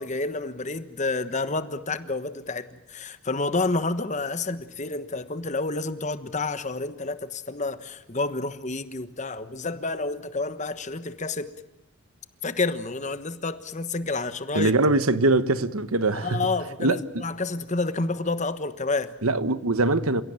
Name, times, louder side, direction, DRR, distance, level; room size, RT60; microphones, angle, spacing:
voice 1, 0.0-11.5 12.4-14.7 16.1-19.1, left 3 dB, 35° left, 1.2 m, -29 dB
voice 2, 14.5-16.4 16.8-17.0 19.2-20.2, right 2 dB, 80° right, 1.2 m, -22 dB
29.5 x 17.0 x 9.0 m
head